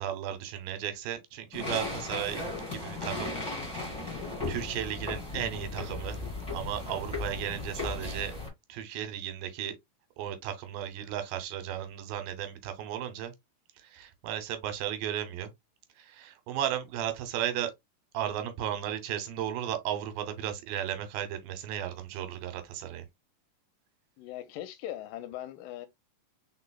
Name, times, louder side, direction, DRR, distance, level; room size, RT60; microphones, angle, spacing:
voice 1, 0.0-3.3 4.0-6.2 6.5-8.4 8.7-9.8 10.2-13.3 13.8-15.5 16.0-17.7 18.1-23.0, right 10 dB, 85° right, 2.7 m, -35 dB
sound 1, 1.5-8.5, left 2 dB, 10° left, 1.9 m, -36 dB
voice 2, 24.2-25.9, left 12 dB, 80° left, 2.1 m, -40 dB
4.9 x 4.3 x 2.3 m
omnidirectional pair, 4.1 m